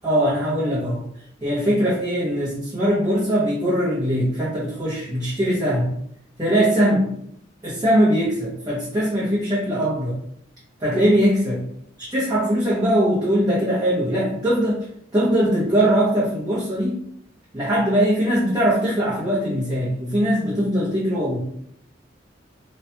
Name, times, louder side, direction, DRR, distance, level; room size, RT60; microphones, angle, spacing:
voice 1, 0.0-1.1 1.4-5.9 6.4-7.1 7.6-10.2 10.8-11.6 12.0-14.9 15.1-17.0 17.5-21.4, equal, 20° right, -8 dB, 0.7 m, -21 dB
3.0 x 2.1 x 2.8 m, 0.71 s
head